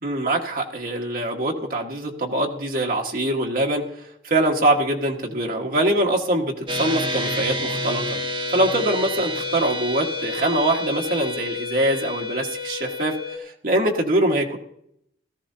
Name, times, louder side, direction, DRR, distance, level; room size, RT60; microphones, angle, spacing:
voice 1, 0.0-3.9 4.2-8.2 8.5-14.6, right 1 dB, 50° right, 1 dB, 1.6 m, -23 dB
sound 1, 6.7-13.4, left 1 dB, 25° right, 1.0 m, -29 dB
17.5 x 14.0 x 2.8 m, 0.74 s
head